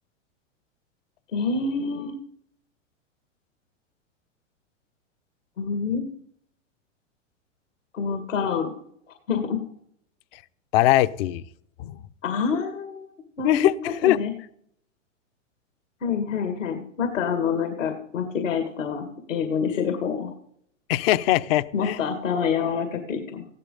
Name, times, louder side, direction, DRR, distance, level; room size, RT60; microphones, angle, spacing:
voice 1, 1.3-2.1 5.6-6.1 7.9-8.7 9.3-9.6 12.2-13.1 13.4-13.7 14.0-14.3 16.0-20.3 21.7-23.5, left 6 dB, 75° left, 5 dB, 2.1 m, -27 dB
voice 2, 10.7-11.4 11.8-12.0 13.4-14.2 20.9-22.0, left 14 dB, 50° left, 15 dB, 0.8 m, -21 dB
16.0 x 12.0 x 3.9 m, 0.68 s
hypercardioid pair, 110°, 38 cm